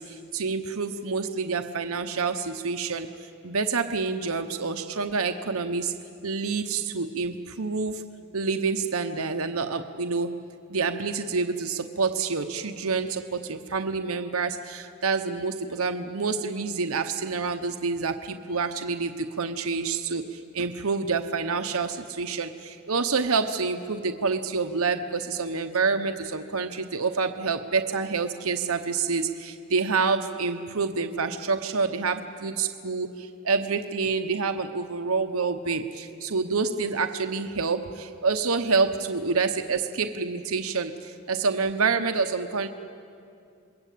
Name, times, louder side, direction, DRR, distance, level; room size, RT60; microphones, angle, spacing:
voice 1, 0.0-3.1 3.4-5.9 6.2-8.0 8.3-10.4 10.7-42.7, right 4 dB, 90° right, 7 dB, 1.0 m, -27 dB
28.0 x 22.0 x 8.5 m, 2.5 s
head